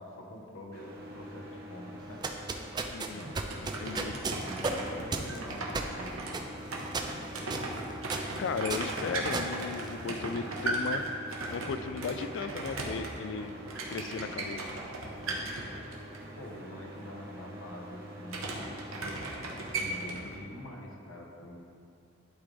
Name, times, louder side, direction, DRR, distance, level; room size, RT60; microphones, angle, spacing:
voice 1, 0.0-2.2 3.0-3.6 4.4-7.4 15.2-15.5 16.2-18.8 19.7-21.6, left 1 dB, 80° left, -1 dB, 1.0 m, -46 dB
sound 1, 0.7-20.1, equal, 50° right, 0.9 m, -46 dB
sound 2, 2.0-10.4, right 3 dB, 20° right, 0.3 m, -36 dB
voice 2, 2.9-3.2 3.6-4.2 8.4-11.0 11.5-13.5 13.9-14.7, left 5 dB, 60° left, 11 dB, 0.3 m, -36 dB
sound 3, 3.2-16.2 18.3-20.4, right 2 dB, 85° right, 1.0 m, -37 dB
11.5 x 3.8 x 3.3 m, 2.4 s
head